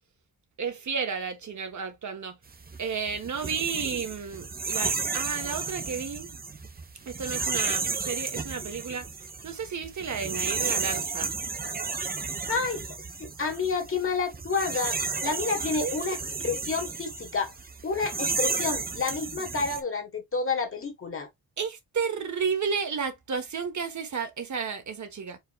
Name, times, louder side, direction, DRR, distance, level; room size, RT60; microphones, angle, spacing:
voice 1, 0.6-2.4 2.8-6.4 7.1-9.1 9.4-11.3 15.8-16.0 21.6-25.4, right 6 dB, 55° right, 1.2 m, -32 dB
sound 1, 2.5-19.8, right 4 dB, 25° right, 0.7 m, -33 dB
voice 2, 12.5-12.8 13.2-16.2 16.4-17.5 17.8-21.3, left 4 dB, 35° left, 1.3 m, -29 dB
4.6 x 4.1 x 2.3 m
wide cardioid pair, 125°, 35 cm